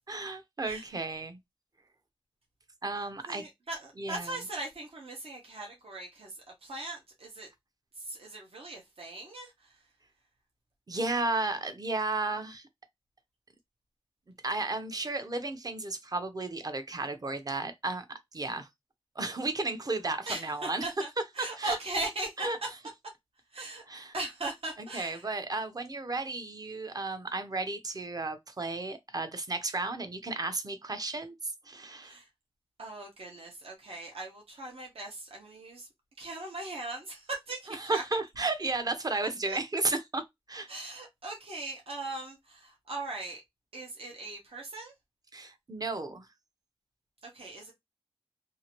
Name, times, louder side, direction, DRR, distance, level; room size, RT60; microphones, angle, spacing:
voice 1, 0.1-1.4 2.8-3.4 4.0-4.4 10.9-12.6 14.4-18.1 18.3-18.7 19.2-20.8 21.4-21.8 22.4-22.6 23.9-24.1 24.8-32.2 37.7-40.7 45.3-46.3, right 3 dB, 40° right, 0.6 m, -33 dB
voice 2, 3.3-6.3 6.6-7.5 8.1-9.8 20.3-21.1 21.3-22.7 23.5-23.8 24.1-25.3 32.0-32.2 32.8-35.9 36.2-38.0 39.5-39.6 40.7-43.4 43.7-44.9 47.3-47.7, right 2 dB, 75° right, 0.9 m, -39 dB
2.7 x 2.5 x 2.9 m
wide cardioid pair, 85°, 10 cm